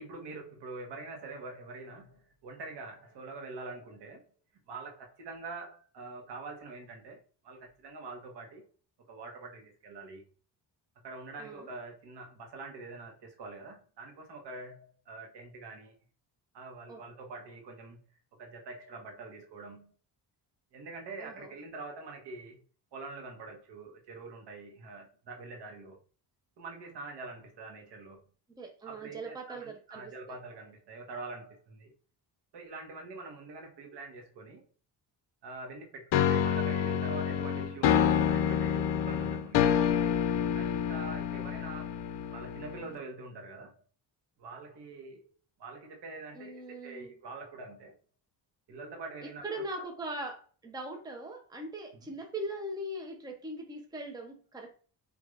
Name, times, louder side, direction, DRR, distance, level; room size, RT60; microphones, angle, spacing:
voice 1, 0.0-4.3 4.7-8.7 9.1-10.2 11.0-16.0 16.5-18.0 18.4-19.9 20.7-22.6 22.9-26.0 26.6-28.2 28.9-31.9 32.5-34.6 35.4-39.8 40.5-42.1 42.3-43.8 44.4-45.3 45.6-47.9 48.7-49.8 51.9-52.1, right 3 dB, 70° right, 1.2 m, -45 dB
voice 2, 21.2-21.5 28.5-30.1 46.3-47.1 49.4-54.7, right 1 dB, 10° right, 0.7 m, -40 dB
sound 1, 36.1-43.0, left 8 dB, 75° left, 0.5 m, -28 dB
4.8 x 2.6 x 2.5 m
cardioid pair, 130°, 43 cm